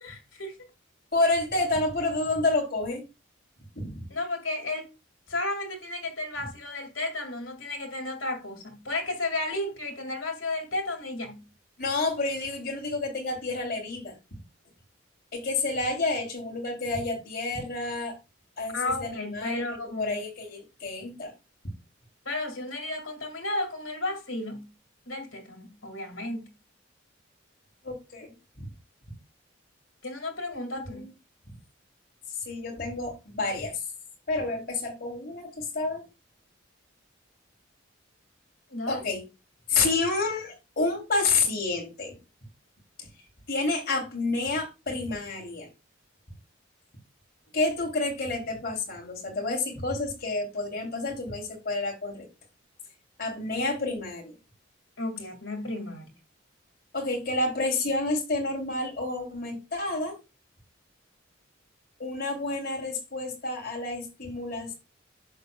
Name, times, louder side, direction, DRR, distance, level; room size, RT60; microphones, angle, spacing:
voice 1, 0.0-0.6 4.1-4.9 5.3-11.4 18.7-20.2 22.3-24.7 25.1-26.5 30.0-31.0 38.7-39.0 55.0-56.1, left 2 dB, 80° left, 2.1 m, -33 dB
voice 2, 1.1-3.0 3.7-4.0 11.8-14.2 15.3-18.1 18.6-21.3 27.8-28.7 30.7-31.1 32.3-33.8 34.3-36.0 38.9-39.2 39.7-42.2 43.5-45.7 47.5-52.2 53.2-54.3 56.9-60.1 62.0-64.7, left 3 dB, 50° left, 3.1 m, -29 dB
11.0 x 6.9 x 2.3 m
head